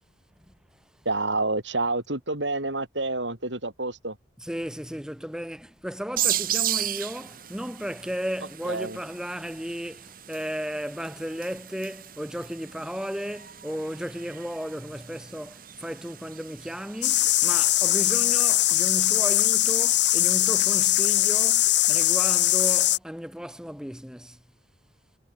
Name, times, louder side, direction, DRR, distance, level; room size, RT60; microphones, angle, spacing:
voice 1, 1.1-4.2 8.7-9.0, right 2 dB, 75° right, 7.4 m, -28 dB
voice 2, 4.4-24.4, equal, 5° right, 2.8 m, -34 dB
sound 1, 6.2-17.5, right 12 dB, 50° right, 3.7 m, -35 dB
sound 2, 17.0-23.0, left 14 dB, 70° left, 1.6 m, -21 dB
head